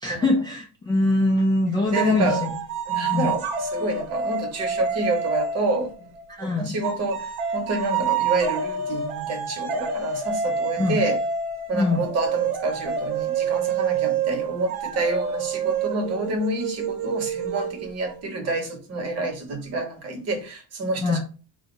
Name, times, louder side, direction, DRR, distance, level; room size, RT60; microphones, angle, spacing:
voice 1, 0.0-2.3 3.1-3.3 6.3-6.7 10.8-11.0 11.7-12.0 21.0-21.2, left 2 dB, 10° left, 0.4 m, -22 dB
voice 2, 1.9-2.4 2.9-6.1 6.4-11.2 11.7-21.2, right 2 dB, 40° right, 0.9 m, -28 dB
sound 1, 1.9-6.3 6.8-18.2, right 6 dB, 65° right, 0.9 m, -28 dB
3.9 x 2.2 x 4.5 m
cardioid pair, 175°, 41 cm